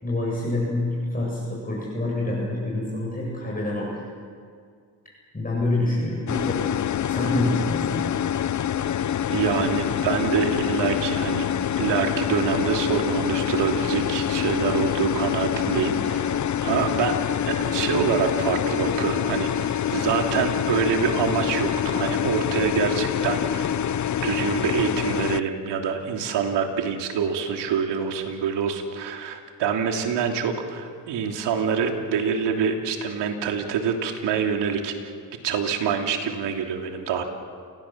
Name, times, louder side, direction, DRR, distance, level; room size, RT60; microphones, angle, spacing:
voice 1, 0.0-4.0 5.3-6.6 7.1-8.1, left 2 dB, 20° left, -5 dB, 7.9 m, -27 dB
sound 1, 6.3-25.4, left 9 dB, 45° left, 0.8 m, -26 dB
voice 2, 9.3-11.5 11.8-23.7 24.2-35.1 35.4-37.2, right 6 dB, 75° right, 3 dB, 3.2 m, -26 dB
29.5 x 18.0 x 7.5 m, 2.2 s
supercardioid pair, 70°, 42 cm